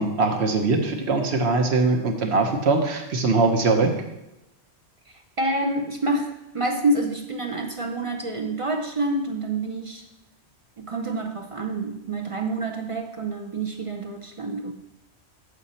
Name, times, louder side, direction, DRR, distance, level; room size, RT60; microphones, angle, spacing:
voice 1, 0.0-3.9, right 3 dB, 70° right, 4 dB, 1.2 m, -21 dB
voice 2, 5.4-10.0 10.8-14.7, right 2 dB, 40° right, 4 dB, 0.5 m, -27 dB
6.4 x 6.4 x 4.3 m, 0.93 s
omnidirectional pair, 1.2 m